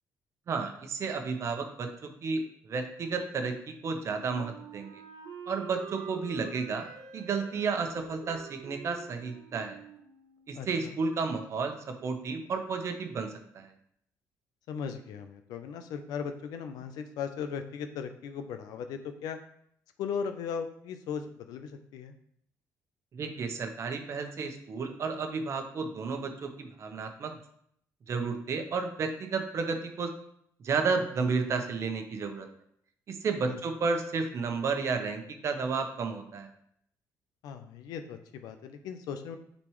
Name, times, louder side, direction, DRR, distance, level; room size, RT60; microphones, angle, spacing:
voice 1, 0.5-4.9 5.5-6.9 7.1-9.8 10.5-13.7 23.1-27.4 28.1-30.1 30.6-32.5 33.1-36.5, right 4 dB, 45° right, 5 dB, 1.0 m, -32 dB
Wind instrument woodwind instrument, 3.9-10.7, right 5 dB, 80° right, 0.9 m, -47 dB
voice 2, 10.5-11.0 14.7-19.4 20.0-22.1 33.5-33.6 37.4-39.4, left 7 dB, 85° left, 8 dB, 0.7 m, -37 dB
8.9 x 4.2 x 3.2 m, 0.69 s
cardioid pair, 125°, 7 cm